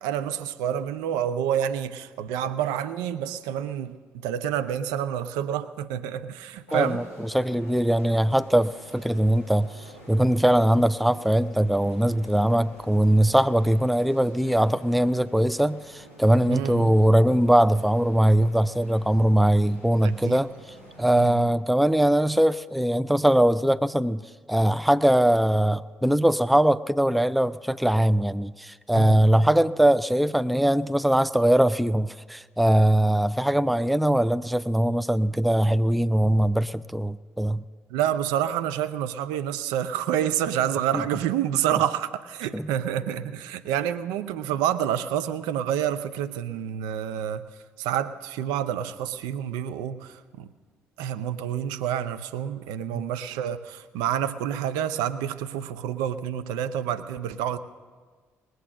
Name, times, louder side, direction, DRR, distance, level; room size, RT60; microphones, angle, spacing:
voice 1, 0.0-7.0 16.5-17.0 20.0-20.4 21.1-21.5 28.9-29.2 37.9-47.5 47.8-50.5 51.0-57.6, right 10 dB, 65° right, 12 dB, 0.6 m, -28 dB
voice 2, 6.7-7.0 7.3-9.7 10.1-20.5 21.0-24.2 24.5-37.6 40.9-41.0 42.5-42.7, right 1 dB, ahead, 16 dB, 0.4 m, -21 dB
sound 1, 6.7-21.4, equal, 90° right, 4.7 m, -48 dB
20.5 x 7.9 x 6.5 m, 1.5 s
figure-of-eight pair, 45°, 7 cm